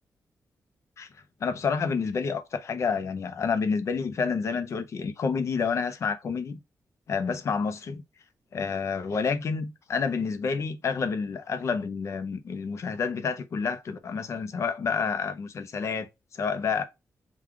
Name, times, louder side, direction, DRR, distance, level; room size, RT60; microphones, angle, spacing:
voice 1, 1.4-6.6 7.1-8.0 8.5-16.8, left 5 dB, 50° left, 0.6 m, -29 dB
3.6 x 2.4 x 4.5 m
wide cardioid pair, 170°, 6 cm